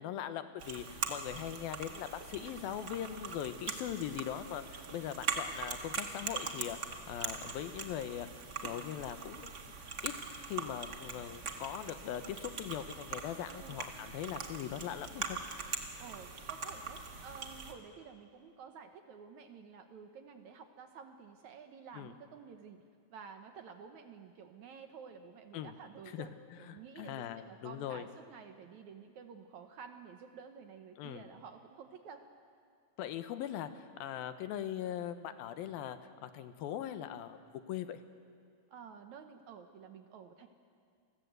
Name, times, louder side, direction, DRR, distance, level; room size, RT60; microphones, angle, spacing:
voice 1, 0.0-8.3 8.6-9.5 10.0-10.1 10.5-15.4 21.9-22.1 25.5-25.8 26.1-26.3 26.6-28.1 31.0-31.2 33.0-38.0, left 10 dB, 80° left, 10 dB, 2.8 m, -40 dB
sound 1, 0.6-17.7, right 5 dB, 45° right, 1.4 m, -42 dB
voice 2, 2.4-2.8 13.5-13.9 16.0-22.8 23.1-32.2 38.7-40.5, right 6 dB, 65° right, 6 dB, 2.0 m, -51 dB
29.0 x 20.0 x 8.1 m, 2.2 s
omnidirectional pair, 4.2 m